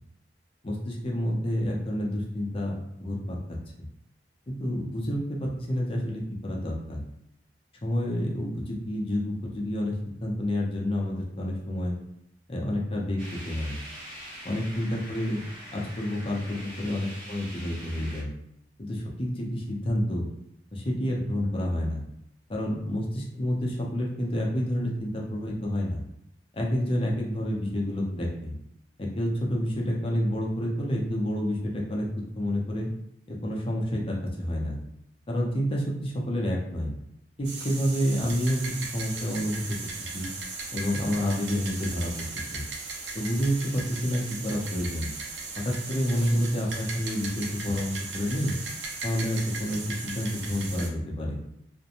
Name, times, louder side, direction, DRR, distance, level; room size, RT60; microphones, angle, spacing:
voice 1, 0.6-3.4 4.5-7.0 7.8-12.0 12.5-13.2 13.4-13.7 14.4-15.4 15.7-18.3 18.8-20.3 20.7-22.0 22.5-26.0 26.5-28.5 29.0-32.1 32.4-32.9 33.4-34.8 35.3-36.9 37.4-38.6 38.9-39.6 40.0-40.3 40.7-42.3 42.5-42.6 43.1-45.1 45.6-48.5 49.0-51.4, equal, 30° left, -2 dB, 0.5 m, -29 dB
sound 1, 13.2-18.2, equal, 30° right, 0.8 m, -43 dB
sound 2, 37.4-50.9, right 3 dB, 85° right, 0.5 m, -37 dB
2.5 x 2.1 x 2.8 m, 0.77 s
head